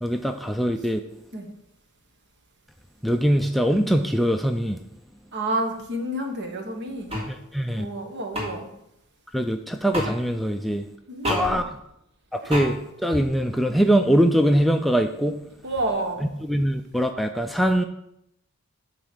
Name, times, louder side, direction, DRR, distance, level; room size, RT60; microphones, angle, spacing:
voice 1, 0.0-1.0 3.0-4.8 7.3-7.9 9.3-10.8 11.3-11.6 12.3-15.4 16.4-17.8, equal, ahead, 5 dB, 0.3 m, -22 dB
voice 2, 5.3-7.2 7.7-8.7 11.1-11.6 12.4-12.7 15.6-16.3, right 1 dB, 55° right, 4 dB, 1.4 m, -30 dB
sound 1, 7.1-7.3 8.3-8.5 9.9-10.1 11.2-11.4 12.5-12.7, equal, 30° right, 3.2 m, -26 dB
9.2 x 4.0 x 6.7 m, 0.80 s
head